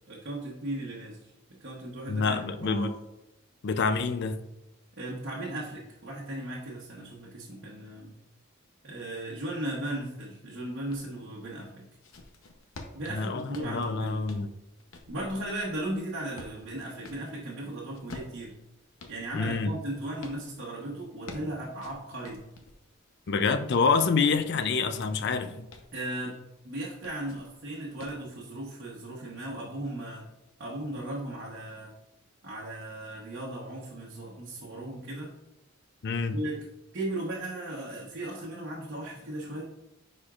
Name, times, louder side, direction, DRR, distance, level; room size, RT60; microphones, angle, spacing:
voice 1, 0.1-1.3 1.6-2.9 5.0-8.1 8.8-11.9 12.9-14.3 15.1-18.5 19.1-22.4 25.9-26.4 26.6-30.2 30.6-31.9 32.4-35.3 36.3-36.7 36.9-39.6, right 1 dB, 50° right, -5 dB, 1.0 m, -36 dB
voice 2, 2.1-2.9 3.6-4.4 13.2-14.5 19.3-19.7 23.3-25.7 36.0-36.4, left 4 dB, 50° left, 11 dB, 0.4 m, -27 dB
sound 1, 10.9-11.1 11.7-17.3 17.9-20.4 21.0-22.8 23.3-25.1 25.5-25.9 26.9-27.5 28.0-28.3, left 2 dB, 70° left, 0.8 m, -48 dB
9.6 x 4.3 x 2.4 m, 0.90 s
head